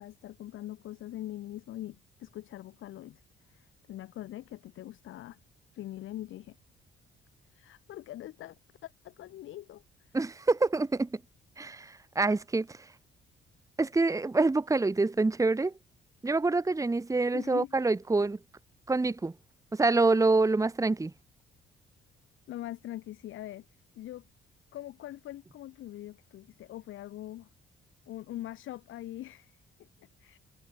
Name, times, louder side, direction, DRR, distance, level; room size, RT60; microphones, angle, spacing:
voice 1, 0.0-5.4 5.7-6.6 7.4-8.6 8.8-10.2 17.3-17.8 22.5-23.7 23.9-24.3 24.7-27.5 28.1-30.4, left 14 dB, 85° left, 4.7 m, -43 dB
voice 2, 10.1-11.1 11.6-12.7 13.8-15.7 16.2-18.4 18.9-19.3 19.7-21.1, right 3 dB, 15° right, 1.3 m, -26 dB
cardioid pair, 90°, 20 cm